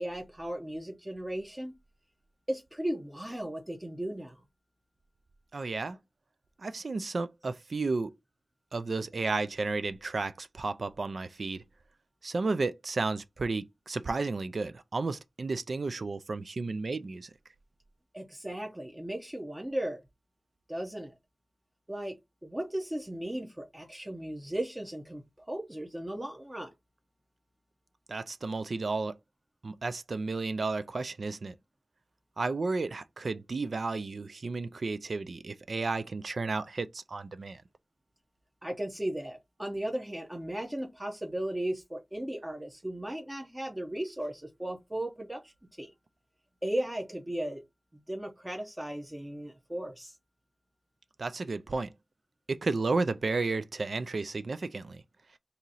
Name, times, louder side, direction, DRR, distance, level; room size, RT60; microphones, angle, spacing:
voice 1, 0.0-1.7 2.5-4.4 18.1-20.0 20.7-21.1 21.9-25.2 25.5-26.7 38.6-45.5 45.8-45.9 46.6-47.6 48.1-50.1, right 1 dB, 20° right, 0.8 m, -36 dB
voice 2, 5.5-6.0 6.6-8.1 8.7-11.6 12.2-17.3 28.1-29.2 29.6-31.5 32.4-37.6 51.2-51.9 52.5-55.0, right 3 dB, 75° right, 0.3 m, -32 dB
2.9 x 2.7 x 4.0 m
cardioid pair, 45°, 0 cm